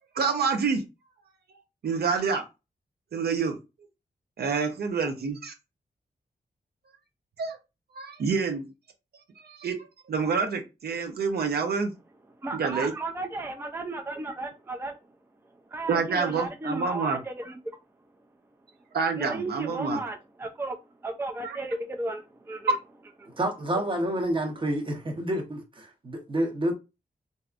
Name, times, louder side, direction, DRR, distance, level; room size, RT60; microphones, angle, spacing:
voice 1, 0.1-0.8 1.8-2.4 3.1-3.6 4.4-5.5 7.4-7.6 8.0-8.7 9.4-9.8 10.1-11.9 12.5-12.9 15.9-17.2 18.9-20.0 21.4-21.6, right 5 dB, 90° right, 0.7 m, -27 dB
voice 2, 12.4-14.9 15.7-17.6 19.2-20.8 21.0-22.8 23.2-23.4, right 2 dB, 15° right, 0.4 m, -34 dB
voice 3, 23.4-26.7, right 1 dB, 30° right, 0.9 m, -28 dB
3.4 x 2.7 x 2.4 m
wide cardioid pair, 115°, 16 cm